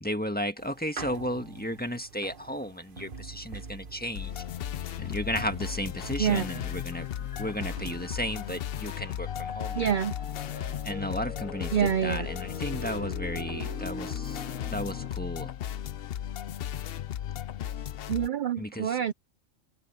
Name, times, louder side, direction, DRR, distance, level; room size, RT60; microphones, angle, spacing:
voice 1, 0.0-4.4 5.0-7.1 7.4-9.9 10.8-15.5 18.6-19.0, equal, 5° left, 1.6 m, -34 dB
mass occidens, 0.6-8.5, right 4 dB, 45° right, 1.2 m, -46 dB
sound 1, 4.1-18.3, left 11 dB, 60° left, 0.7 m, -35 dB
sound 2, 6.2-15.1, left 2 dB, 85° left, 2.9 m, -43 dB
voice 2, 9.7-10.1 11.7-12.3 18.1-19.1, right 8 dB, 70° right, 0.4 m, -26 dB
open air
omnidirectional pair, 1.4 m